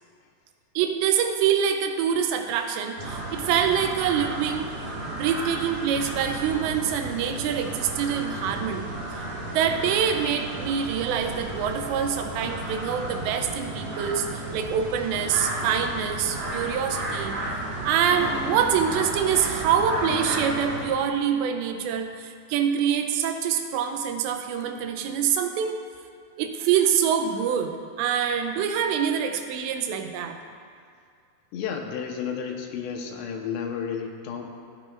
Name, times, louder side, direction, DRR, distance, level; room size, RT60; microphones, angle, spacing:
voice 1, 0.8-4.8 5.2-8.9 9.4-17.4 17.8-25.9 26.4-30.4, right 8 dB, 85° right, 6 dB, 3.0 m, -25 dB
sound 1, 3.0-20.9, right 2 dB, 45° right, 2.0 m, -33 dB
voice 2, 31.5-34.5, left 7 dB, 80° left, 2 dB, 3.2 m, -32 dB
28.5 x 9.7 x 2.5 m, 2.2 s
omnidirectional pair, 5.0 m